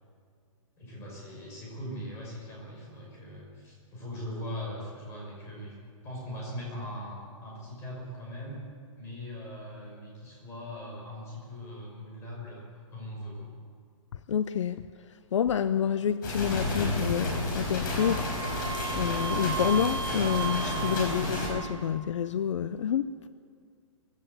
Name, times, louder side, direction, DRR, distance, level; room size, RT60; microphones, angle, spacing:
voice 1, 0.8-8.7 9.0-13.5, equal, 15° left, -3 dB, 5.8 m, -40 dB
voice 2, 14.3-14.8 15.3-18.3 18.5-18.7 19.0-23.3, left 8 dB, 60° left, 13 dB, 0.6 m, -28 dB
sound 1, 16.2-21.5, left 2 dB, 35° left, 5.3 m, -31 dB
Wind instrument woodwind instrument, 18.0-21.9, right 6 dB, 50° right, 3.3 m, -36 dB
21.5 x 16.0 x 8.1 m, 2.1 s
hypercardioid pair, 170°, 17 cm